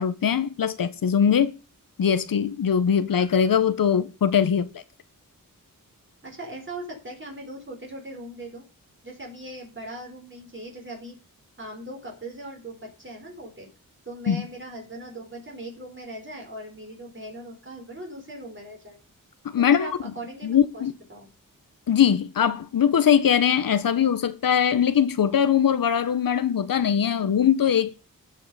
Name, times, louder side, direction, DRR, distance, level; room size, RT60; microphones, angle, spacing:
voice 1, 0.0-1.5 2.0-4.7 14.3-14.4 19.4-19.9 20.4-20.9 21.9-28.0, left 8 dB, 75° left, 0.8 m, -21 dB
voice 2, 6.2-8.6 9.0-11.2 11.6-13.7 14.0-19.0 19.6-21.3, right 1 dB, 35° right, 4.5 m, -39 dB
16.5 x 5.6 x 5.5 m
wide cardioid pair, 120°, 34 cm